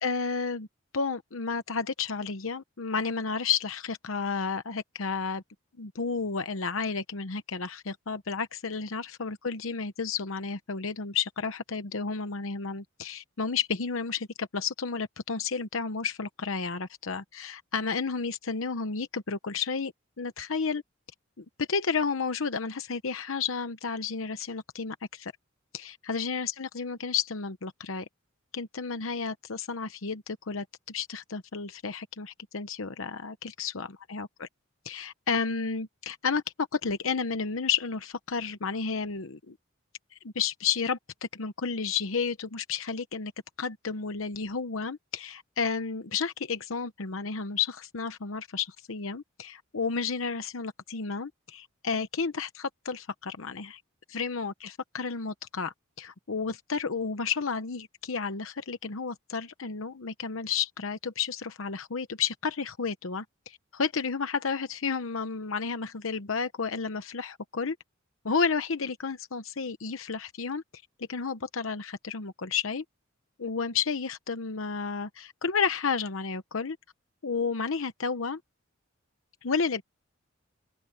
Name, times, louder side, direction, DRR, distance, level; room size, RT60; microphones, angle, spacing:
voice 1, 0.0-0.7 0.9-5.4 5.8-19.9 20.2-20.8 21.4-25.3 25.7-28.1 28.5-34.5 34.8-39.5 40.1-41.0 41.3-43.3 43.6-53.8 54.1-67.8 68.2-70.6 71.0-72.8 73.4-76.8 77.2-78.4 79.4-79.8, left 5 dB, 80° left, 0.9 m, -32 dB
open air
head